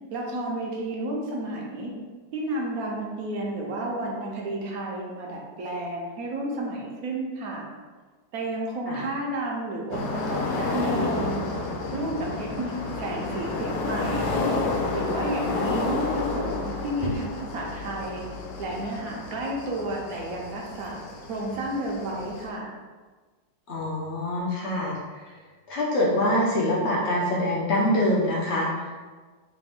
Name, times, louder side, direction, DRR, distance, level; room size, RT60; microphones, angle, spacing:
voice 1, 0.1-1.9 2.3-7.7 8.3-11.6 11.9-14.3 14.9-18.3 18.6-21.0 21.3-22.7, right 1 dB, 65° right, -2 dB, 1.0 m, -31 dB
sound 1, 9.9-22.5, left 3 dB, 80° left, 1.1 m, -30 dB
voice 2, 23.7-25.2 25.7-29.0, left 1 dB, 60° left, -5 dB, 0.7 m, -25 dB
3.3 x 2.5 x 3.4 m, 1.4 s
omnidirectional pair, 1.9 m